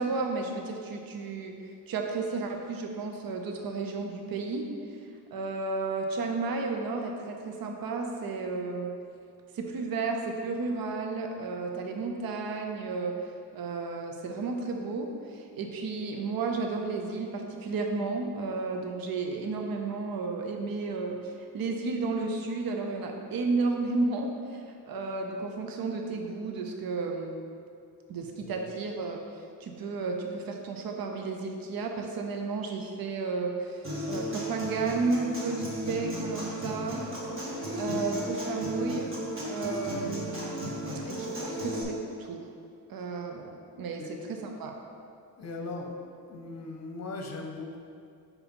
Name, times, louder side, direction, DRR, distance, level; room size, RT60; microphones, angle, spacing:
voice 1, 0.0-1.5 1.9-4.7 5.3-8.9 9.5-13.1 13.5-21.2 21.5-27.3 28.1-29.2 29.6-37.0 37.7-39.1 39.5-40.7 41.1-42.5 42.9-44.8, right 3 dB, 60° right, 2 dB, 0.7 m, -32 dB
Human voice / Acoustic guitar, 33.8-41.8, equal, 30° right, 1.4 m, -35 dB
voice 2, 45.4-46.0 46.3-47.8, left 3 dB, 40° left, 2 dB, 0.8 m, -38 dB
4.7 x 4.0 x 5.4 m, 2.4 s
cardioid pair, 115°, 40 cm